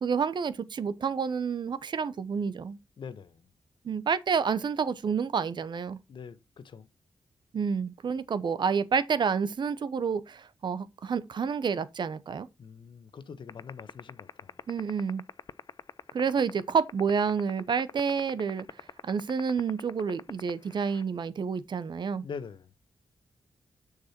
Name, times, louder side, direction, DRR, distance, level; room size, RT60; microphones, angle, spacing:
voice 1, 0.0-2.8 3.8-6.0 7.5-12.5 14.7-15.2 16.1-18.7 19.0-22.3, right 6 dB, 60° right, 0.8 m, -29 dB
voice 2, 3.0-3.5 6.1-6.9 12.6-14.6 22.2-22.7, left 6 dB, 65° left, 1.2 m, -43 dB
sound 1, 13.5-21.0, left 6 dB, 50° left, 0.5 m, -40 dB
6.8 x 6.6 x 4.3 m
cardioid pair, 85°, 9 cm